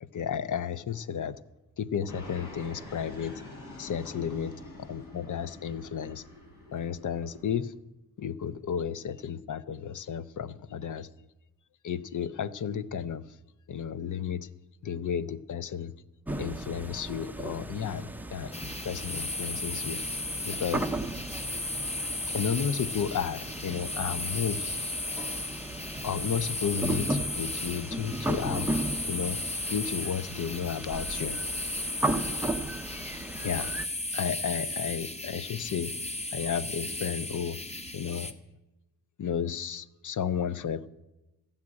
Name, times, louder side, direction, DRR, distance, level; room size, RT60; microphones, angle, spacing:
voice 1, 0.1-1.3 1.8-3.4 3.8-4.5 4.8-6.2 6.7-7.7 8.2-11.1 11.8-13.2 13.7-14.5 14.8-15.9 16.4-18.5 18.8-20.0 20.4-20.8 22.3-24.8 26.0-28.7 29.1-29.4 29.7-31.4 33.4-33.7 34.1-35.9 36.3-37.6 37.9-38.3 39.2-40.9, left 8 dB, 55° left, 15 dB, 0.7 m, -32 dB
Fixed-wing aircraft airplane, 2.1-7.5, left 2 dB, 75° left, 5.3 m, -46 dB
sound 1, 16.3-33.9, right 1 dB, 5° right, 0.7 m, -36 dB
sound 2, 18.5-38.3, left 2 dB, 15° left, 0.9 m, -35 dB
13.5 x 7.3 x 9.7 m, 1.0 s
cardioid pair, 80°, 37 cm